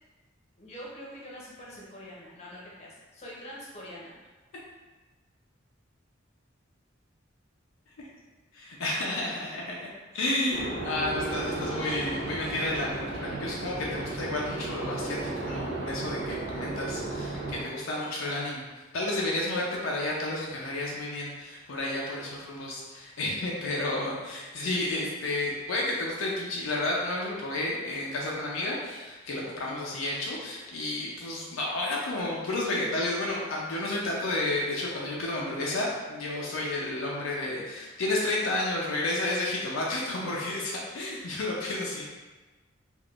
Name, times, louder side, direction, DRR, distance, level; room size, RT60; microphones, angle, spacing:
voice 1, 0.6-4.1 10.1-10.3, equal, 35° left, -6 dB, 0.8 m, -44 dB
voice 2, 8.5-9.8 10.1-18.6 18.9-42.1, left 2 dB, 75° left, -4 dB, 0.5 m, -31 dB
sound 1, 10.5-17.6, right 2 dB, 65° right, 0.6 m, -34 dB
3.4 x 2.4 x 2.4 m, 1.2 s
head